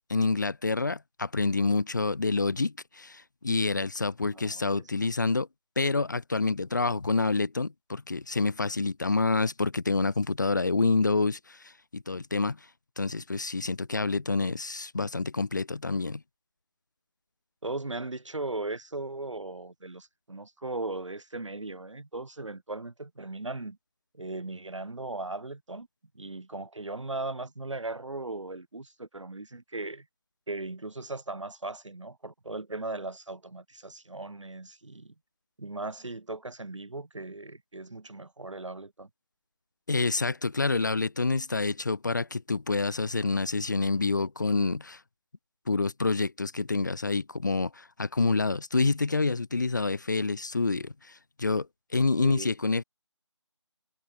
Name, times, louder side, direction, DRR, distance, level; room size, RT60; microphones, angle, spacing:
voice 1, 0.1-5.5 5.8-12.6 13.0-16.2 39.9-45.0 45.7-51.7 51.9-52.8, left 3 dB, 40° left, 0.5 m, -27 dB
voice 2, 17.6-23.8 24.1-25.9 26.2-30.1 30.5-35.1 35.6-39.1 52.2-52.5, right 2 dB, 80° right, 2.3 m, -38 dB
figure-of-eight pair, 170°, 16 cm